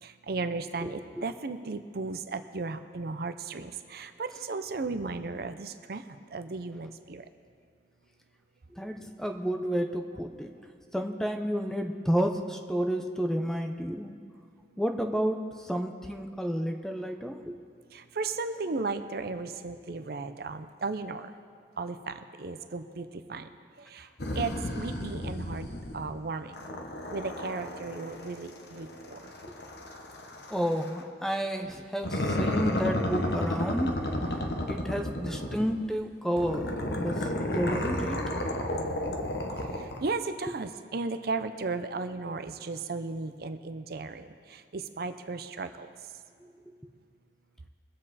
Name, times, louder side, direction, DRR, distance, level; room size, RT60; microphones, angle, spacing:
voice 1, 0.0-7.3 14.7-14.8 17.9-21.3 21.8-23.5 23.8-24.1 24.3-25.7 25.9-26.7 27.1-29.3 39.5-45.9, right 3 dB, 60° right, 9 dB, 0.6 m, -35 dB
voice 2, 8.8-10.5 10.9-14.1 14.8-17.6 30.5-34.0 34.7-38.2 46.7-46.8, equal, 5° left, 5 dB, 0.7 m, -31 dB
sound 1, 24.2-26.2 26.5-31.1 32.0-35.9 36.4-40.1, left 1 dB, 65° left, 1.1 m, -33 dB
22.5 x 7.6 x 4.2 m, 2.1 s
head